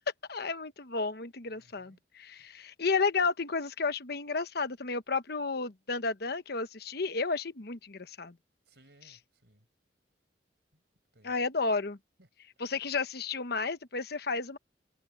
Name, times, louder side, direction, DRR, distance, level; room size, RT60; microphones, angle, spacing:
voice 1, 0.3-8.3 11.2-12.0 12.6-14.6, left 4 dB, 60° left, 1.1 m, -32 dB
voice 2, 1.5-2.0 8.7-9.7 10.7-10.8 11.1-11.4 12.2-12.3, right 1 dB, 65° right, 5.5 m, -63 dB
head